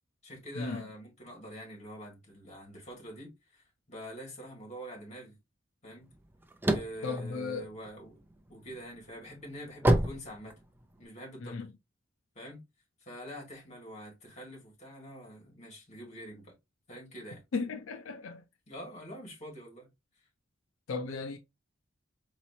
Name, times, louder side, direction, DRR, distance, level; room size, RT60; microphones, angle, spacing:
voice 1, 0.2-5.4 5.8-6.1 6.7-8.2 8.5-10.6 11.0-11.6 12.4-12.6 13.0-16.5 16.9-17.4 18.7-19.9, equal, 35° left, 2.1 m, -45 dB
sound 1, 6.1-8.3 8.8-11.0, right 1 dB, 10° right, 0.5 m, -28 dB
voice 2, 7.0-7.7 11.4-11.7 17.5-18.4 20.9-21.4, left 4 dB, 85° left, 0.5 m, -35 dB
4.1 x 3.0 x 2.7 m
head